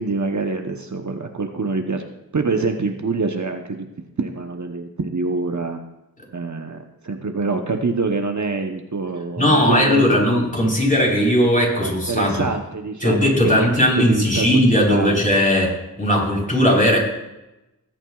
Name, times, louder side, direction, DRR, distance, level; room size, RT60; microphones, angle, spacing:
voice 1, 0.0-2.0 2.3-3.9 4.2-5.8 6.3-10.3 11.7-15.2, right 4 dB, 55° right, 4 dB, 1.0 m, -25 dB
voice 2, 9.4-12.5 13.0-17.0, equal, 20° left, -2 dB, 4.2 m, -18 dB
20.0 x 9.0 x 2.4 m, 0.95 s
wide cardioid pair, 55°, 36 cm